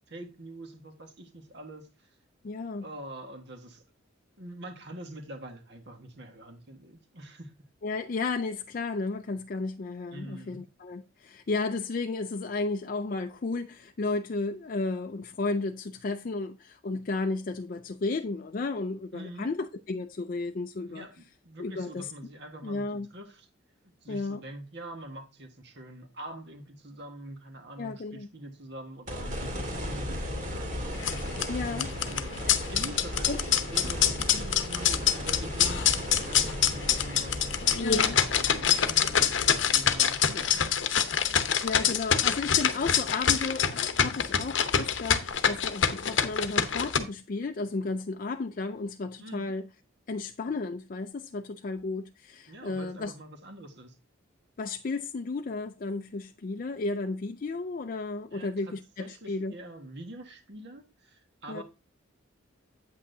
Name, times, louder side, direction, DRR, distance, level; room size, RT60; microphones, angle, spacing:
voice 1, 0.0-2.1 2.8-3.8 4.4-7.5 10.1-10.6 19.1-19.5 20.9-23.5 24.0-31.3 31.6-36.0 36.2-40.9 49.2-49.5 52.5-54.0 58.3-61.6, right 1 dB, 55° right, 1.5 m, -45 dB
voice 2, 2.4-2.9 7.8-21.0 21.6-22.1 22.6-23.1 24.1-24.4 27.8-28.3 31.5-31.9 33.3-33.4 37.8-38.2 41.6-49.7 50.1-53.1 54.6-59.5 61.5-61.6, left 3 dB, 40° left, 0.4 m, -33 dB
sound 1, 29.1-41.4 41.9-42.0 45.3-45.4, equal, 40° right, 2.4 m, -36 dB
sound 2, 30.9-47.0, left 8 dB, 65° left, 0.8 m, -26 dB
8.4 x 8.4 x 2.7 m
head